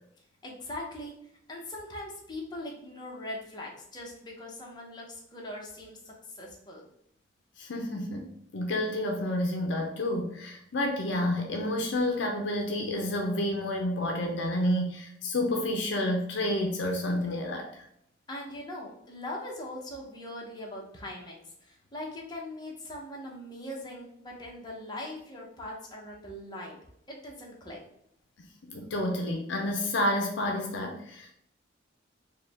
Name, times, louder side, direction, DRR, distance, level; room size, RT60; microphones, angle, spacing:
voice 1, 0.4-1.1 1.5-6.8 18.3-26.8 27.1-27.8, left 1 dB, 20° left, -2 dB, 0.9 m, -41 dB
voice 2, 7.6-17.8 28.7-31.3, left 1 dB, 65° left, 2 dB, 0.6 m, -30 dB
4.6 x 2.2 x 3.4 m, 0.71 s
head